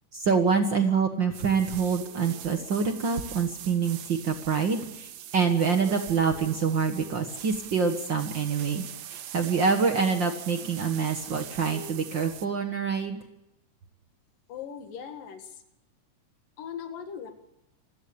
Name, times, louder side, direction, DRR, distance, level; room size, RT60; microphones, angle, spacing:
voice 1, 0.1-8.8 9.1-13.2, right 5 dB, 45° right, 6 dB, 1.7 m, -26 dB
sound 1, 1.3-12.5, right 11 dB, 65° right, 1.6 m, -42 dB
voice 2, 14.5-15.6 16.6-17.3, left 8 dB, 90° left, 7 dB, 3.6 m, -39 dB
26.5 x 16.5 x 7.0 m, 0.88 s
omnidirectional pair, 3.8 m